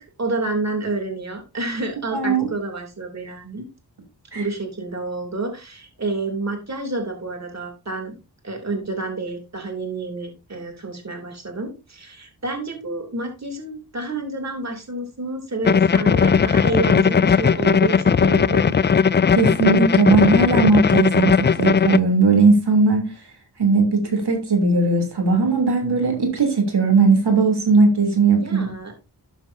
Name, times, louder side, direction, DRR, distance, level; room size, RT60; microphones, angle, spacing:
voice 1, 0.0-3.7 4.3-8.1 8.4-18.9 28.4-28.9, right 3 dB, 40° right, 3.0 m, -29 dB
voice 2, 2.1-2.5 4.3-4.4 19.3-23.1 23.6-28.7, right 4 dB, 70° right, 3.2 m, -18 dB
sound 1, 15.6-22.0, left 6 dB, 30° left, 0.3 m, -17 dB
12.5 x 7.3 x 2.7 m
cardioid pair, 60°, 41 cm